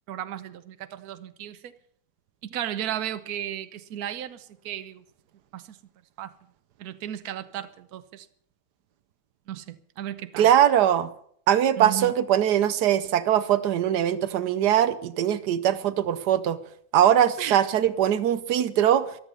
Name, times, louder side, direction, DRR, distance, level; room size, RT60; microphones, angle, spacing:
voice 1, 0.1-1.7 2.4-5.0 5.5-5.8 6.2-6.3 6.8-8.3 9.5-10.5 11.8-12.1 17.4-17.6, right 11 dB, 70° right, 1.3 m, -35 dB
voice 2, 10.4-11.1 11.5-16.6 16.9-19.0, right 10 dB, 90° right, 1.4 m, -21 dB
14.5 x 12.0 x 6.8 m
omnidirectional pair, 1.7 m